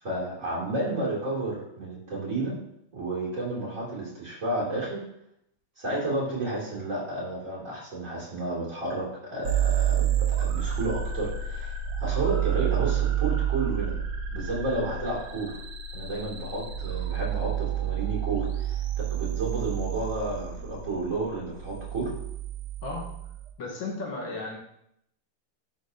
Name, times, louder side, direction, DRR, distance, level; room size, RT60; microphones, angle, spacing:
voice 1, 0.0-2.6 2.9-5.0 5.8-14.0 14.3-15.6 15.9-18.8 19.1-22.1, right 2 dB, 35° right, -5 dB, 2.6 m, -31 dB
sound 1, 9.4-23.5, right 10 dB, 75° right, 1.6 m, -29 dB
voice 2, 23.6-24.6, left 3 dB, 65° left, -2 dB, 1.9 m, -34 dB
10.5 x 5.1 x 2.7 m, 0.76 s
omnidirectional pair, 2.4 m